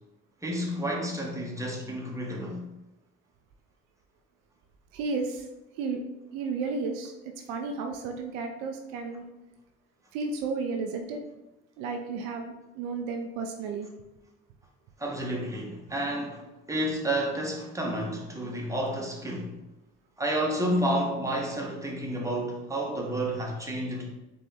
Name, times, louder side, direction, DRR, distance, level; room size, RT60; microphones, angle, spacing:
voice 1, 0.4-2.7 15.0-19.6 20.2-24.2, right 1 dB, 10° right, 1.2 m, -30 dB
voice 2, 4.9-5.5 5.8-6.0 6.3-7.1 7.5-9.2 10.1-11.2 11.8-13.9, right 4 dB, 80° right, 0.5 m, -33 dB
4.1 x 3.2 x 3.5 m
hypercardioid pair, 50°, 33 cm